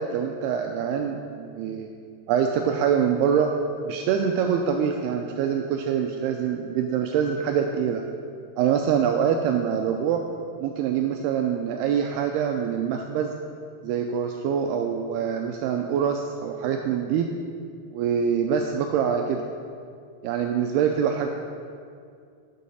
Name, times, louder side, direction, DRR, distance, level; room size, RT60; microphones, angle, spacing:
voice 1, 0.0-1.9 2.3-3.5 3.8-8.0 8.6-10.2 10.6-13.3 13.8-17.3 17.9-19.5 20.2-21.3, right 7 dB, 85° right, 4 dB, 2.3 m, -25 dB
10.5 x 7.4 x 5.5 m, 2.3 s
omnidirectional pair, 5.1 m